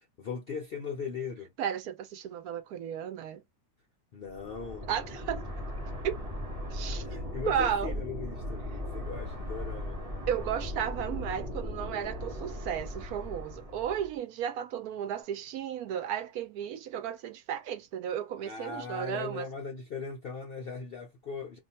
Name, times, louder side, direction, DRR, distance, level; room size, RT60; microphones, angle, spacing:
voice 1, 0.2-1.5 4.1-4.9 7.0-10.0 18.4-21.6, left 5 dB, 65° left, 0.5 m, -39 dB
voice 2, 1.6-3.4 4.9-5.5 6.0-6.2 6.7-7.1 7.5-7.9 10.3-19.5, right 9 dB, 70° right, 1.0 m, -34 dB
sound 1, 4.3-14.1, left 1 dB, 25° right, 1.0 m, -38 dB
2.6 x 2.3 x 4.1 m
omnidirectional pair, 1.7 m